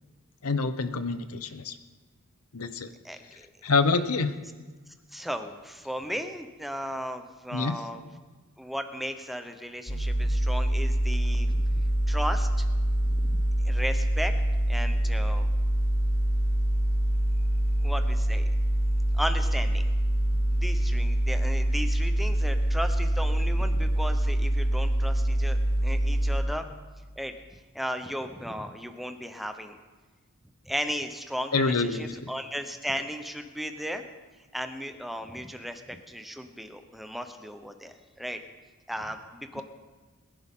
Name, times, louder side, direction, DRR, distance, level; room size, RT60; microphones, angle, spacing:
voice 1, 0.4-1.7 2.5-2.9 3.6-4.3 7.5-7.7 31.5-32.1, left 4 dB, 70° left, 11 dB, 0.8 m, -26 dB
voice 2, 5.1-8.1 8.6-12.6 13.0-14.3 14.7-15.5 17.8-18.5 19.1-19.9 20.6-26.7 27.2-29.8 30.6-34.0 34.5-38.4 38.9-39.6, equal, ahead, 6 dB, 0.9 m, -35 dB
sound 1, 9.9-26.4, right 1 dB, 90° left, 2.9 m, -25 dB
21.5 x 10.5 x 3.8 m, 1.3 s
head